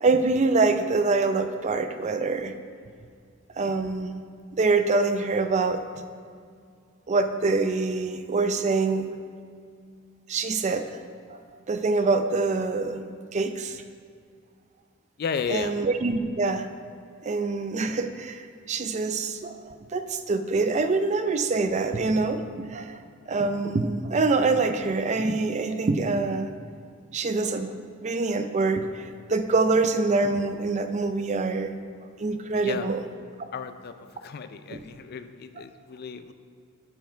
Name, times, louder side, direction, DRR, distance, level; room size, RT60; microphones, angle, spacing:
voice 1, 0.0-2.5 3.6-4.2 4.5-5.8 7.1-9.1 10.3-10.9 11.3-11.4 11.7-13.1 13.3-13.8 15.5-16.7 17.2-23.0 23.3-26.5 27.1-31.7 32.2-33.0 34.7-34.8 35.6-35.7, right 3 dB, 35° right, 8 dB, 0.4 m, -25 dB
voice 2, 15.2-15.7 32.6-32.9 33.5-33.9 34.2-36.3, left 6 dB, 50° left, 10 dB, 0.4 m, -33 dB
7.7 x 7.0 x 4.5 m, 2.2 s
head